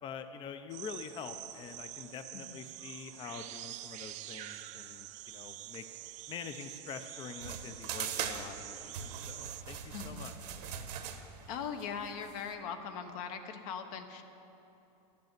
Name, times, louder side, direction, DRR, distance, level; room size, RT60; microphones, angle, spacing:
voice 1, 0.0-5.9 6.3-10.5, left 6 dB, 25° left, 9 dB, 0.5 m, -46 dB
sound 1, 0.7-9.6, right 15 dB, 35° right, 0.4 m, -47 dB
sound 2, 7.4-12.5, right 8 dB, 75° right, 1.1 m, -41 dB
voice 2, 9.9-10.4 11.5-14.2, left 6 dB, 60° left, 7 dB, 1.1 m, -40 dB
11.5 x 6.8 x 8.0 m, 3.0 s
supercardioid pair, 130°, 21 cm